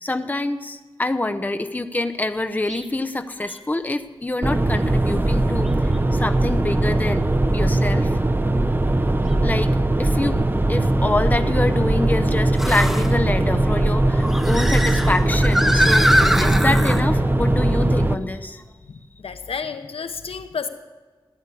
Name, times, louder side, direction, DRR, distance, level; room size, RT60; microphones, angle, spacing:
voice 1, 0.0-7.3 7.5-8.1 9.4-16.1 16.4-18.6, left 2 dB, 20° left, 8 dB, 0.8 m, -26 dB
sound 1, 2.7-2.9 3.5-3.6 5.6-5.7 9.3-9.4 12.6-13.1 14.1-17.0, equal, 5° right, 1.1 m, -22 dB
sound 2, 4.4-18.1, right 1 dB, 20° right, 0.7 m, -20 dB
voice 2, 18.9-20.7, left 5 dB, 80° left, 10 dB, 1.0 m, -31 dB
15.0 x 10.5 x 8.4 m, 1.4 s
wide cardioid pair, 105°, 10 cm